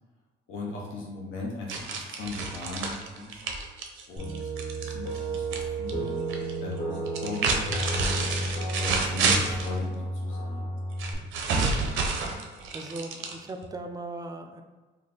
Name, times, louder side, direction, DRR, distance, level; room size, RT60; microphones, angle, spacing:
voice 1, 0.5-3.4 4.1-4.4 4.8-6.2 6.6-7.6 8.0-10.7, left 3 dB, 85° left, -3 dB, 0.7 m, -38 dB
sound 1, 1.7-5.6 5.9-6.5 7.1-9.7 11.0-13.7, right 4 dB, 80° right, 0.5 m, -29 dB
sound 2, 4.2-11.1, right 2 dB, 50° left, 1.3 m, -32 dB
voice 2, 12.1-12.5 12.7-14.6, right 2 dB, 20° right, 5 dB, 0.4 m, -39 dB
3.3 x 2.3 x 3.9 m, 1.3 s
cardioid pair, 90°, 20 cm